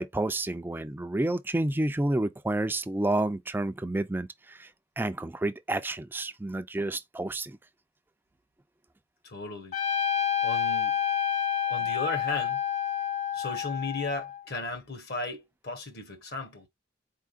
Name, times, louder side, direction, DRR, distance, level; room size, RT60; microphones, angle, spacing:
voice 1, 0.0-4.7 5.0-7.6, right 1 dB, 10° right, 0.3 m, -30 dB
voice 2, 9.2-9.8 10.4-11.0 11.7-12.6 13.3-16.7, left 3 dB, 60° left, 1.2 m, -35 dB
Trumpet, 9.7-14.4, left 8 dB, 40° left, 0.6 m, -29 dB
4.3 x 3.6 x 2.4 m
head